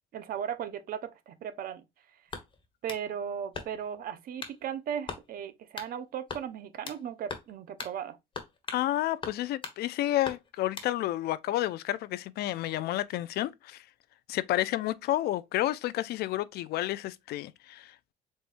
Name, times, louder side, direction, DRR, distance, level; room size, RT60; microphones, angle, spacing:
voice 1, 0.1-1.8 2.8-8.2, right 8 dB, 60° right, 0.8 m, -37 dB
sound 1, 2.3-3.1 3.5-4.0 4.4-4.6 5.1-5.3 5.8-5.9 6.3-7.0 7.3-7.5 7.8-8.0 8.3-8.9 9.2-9.8 10.2-10.9, left 4 dB, 30° left, 1.3 m, -40 dB
voice 2, 8.7-13.8 14.3-17.9, left 14 dB, 70° left, 0.4 m, -30 dB
4.3 x 3.4 x 2.5 m
cardioid pair, 110°, 17 cm